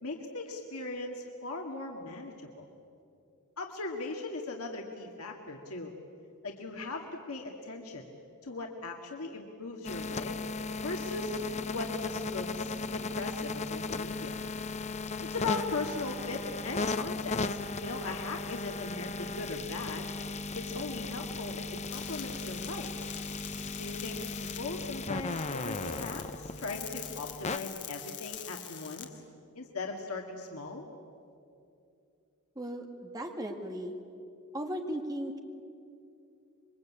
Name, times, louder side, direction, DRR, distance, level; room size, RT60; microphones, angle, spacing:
voice 1, 0.0-2.7 3.6-5.9 6.4-8.1 8.4-10.4 10.8-11.4 11.7-14.4 15.2-20.1 20.5-22.9 23.8-29.2 29.6-30.8, left 3 dB, 75° left, 1 dB, 2.0 m, -39 dB
sound 1, 9.8-27.6, left 3 dB, 30° left, 0.8 m, -36 dB
sound 2, 21.9-29.0, left 11 dB, 50° left, 2.2 m, -45 dB
voice 2, 32.6-33.9 34.5-35.4, right 1 dB, 15° right, 3 dB, 2.1 m, -36 dB
27.0 x 23.0 x 8.6 m, 2.6 s
head